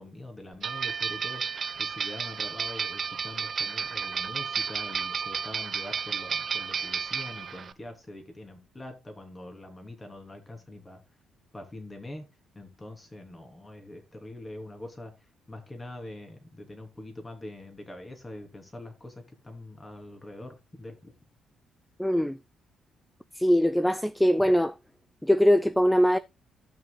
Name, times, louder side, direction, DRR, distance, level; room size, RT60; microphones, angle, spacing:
voice 1, 0.0-1.4 1.8-11.0 11.5-12.3 12.5-15.1 15.5-21.1, left 1 dB, 20° left, 3.0 m, -44 dB
sound 1, 0.6-7.7, right 6 dB, 45° right, 0.7 m, -32 dB
voice 2, 22.0-22.4 23.3-24.7 25.2-26.2, equal, 5° left, 0.4 m, -22 dB
15.5 x 6.3 x 2.2 m
cardioid pair, 90°, 0 cm